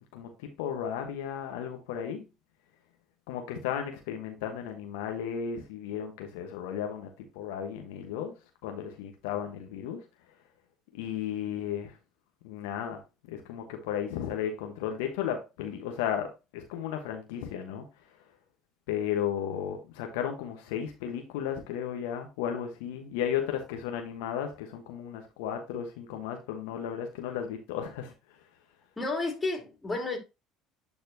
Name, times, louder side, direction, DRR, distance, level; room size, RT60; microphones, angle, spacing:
voice 1, 0.6-2.3 3.3-7.1 7.3-8.3 8.6-10.0 10.9-11.9 12.4-13.0 13.3-17.8 18.9-28.1, left 9 dB, 75° left, 1.1 m, -34 dB
voice 2, 29.0-30.2, left 2 dB, 20° left, 3.0 m, -31 dB
10.5 x 4.2 x 2.7 m
hypercardioid pair, 70°, 0 cm